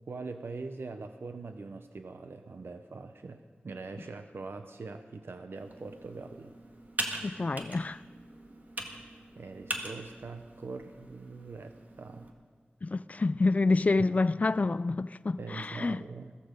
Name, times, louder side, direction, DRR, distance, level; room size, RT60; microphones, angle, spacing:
voice 1, 0.1-6.5 9.4-12.3 14.0-14.1 15.4-16.3, right 3 dB, 80° right, 0.7 m, -42 dB
Computer keyboard, 5.5-12.3, right 1 dB, 45° right, 1.8 m, -41 dB
voice 2, 7.2-8.0 12.8-16.0, left 3 dB, 40° left, 0.3 m, -28 dB
16.0 x 14.5 x 5.1 m
wide cardioid pair, 90°, 4 cm